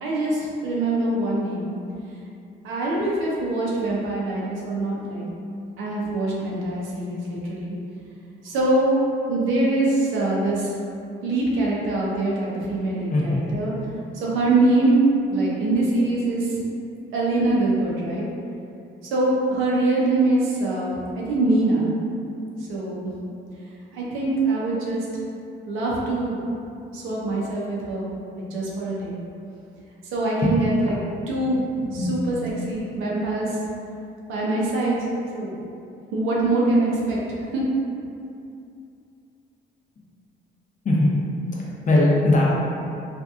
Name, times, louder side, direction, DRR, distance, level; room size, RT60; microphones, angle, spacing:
voice 1, 0.0-1.7 2.6-5.2 5.8-7.8 8.4-9.0 9.3-10.7 11.2-13.7 14.1-16.6 17.1-18.3 19.0-21.9 22.6-23.1 23.9-25.1 25.7-26.5 26.9-28.1 28.4-29.2 30.1-31.0 31.3-31.6 31.9-33.5 34.3-35.0 35.3-35.6 36.1-37.2 37.5-37.6, right 2 dB, 90° right, -5 dB, 0.6 m, -23 dB
voice 2, 13.1-13.5 30.4-30.5 31.8-32.1 40.8-41.1 41.5-42.4, left 2 dB, 40° left, -4 dB, 0.6 m, -20 dB
2.8 x 2.5 x 2.3 m, 2.6 s
cardioid pair, 90°, 20 cm